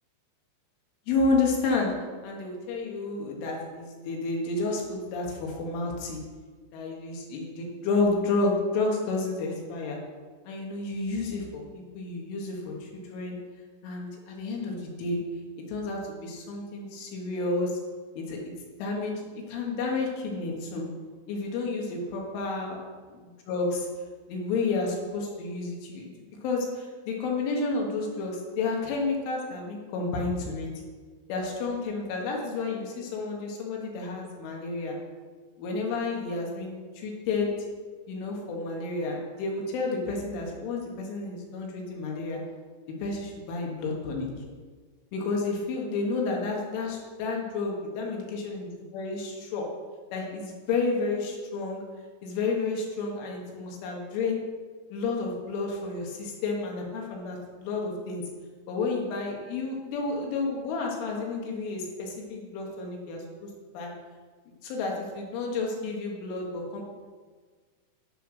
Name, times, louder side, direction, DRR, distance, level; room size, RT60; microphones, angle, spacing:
voice 1, 1.1-1.9 2.2-6.2 6.7-10.0 10.5-13.4 13.8-15.2 15.7-17.8 18.2-18.4 18.8-20.9 21.3-22.8 23.5-23.9 24.3-30.7 31.3-35.0 35.6-37.5 38.1-42.4 43.0-44.3 45.1-49.7 50.1-51.8 52.2-54.4 54.9-58.2 58.7-63.2 63.7-63.9 64.6-66.8, left 3 dB, 75° left, -1 dB, 4.0 m, -31 dB
10.5 x 6.8 x 6.3 m, 1.5 s
omnidirectional pair, 5.8 m